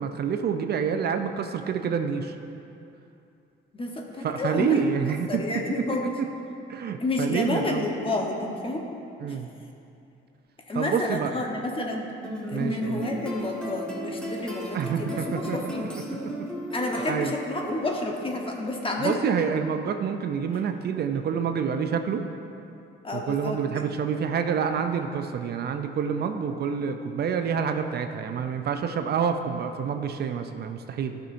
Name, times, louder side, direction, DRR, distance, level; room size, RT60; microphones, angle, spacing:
voice 1, 0.0-2.4 4.2-5.4 6.7-7.9 9.2-9.5 10.7-11.3 12.5-13.0 14.7-15.7 16.4-16.5 17.1-17.3 19.0-22.2 23.1-31.2, right 7 dB, 55° right, 7 dB, 0.4 m, -27 dB
voice 2, 3.7-6.2 7.0-8.9 9.3-9.4 10.6-12.0 12.5-15.9 16.7-19.2 23.0-23.8, left 2 dB, 25° left, 1 dB, 1.0 m, -30 dB
sound 1, 12.2-17.6, equal, 5° left, 1.4 m, -36 dB
12.5 x 5.7 x 2.6 m, 2.7 s
cardioid pair, 90°, 20 cm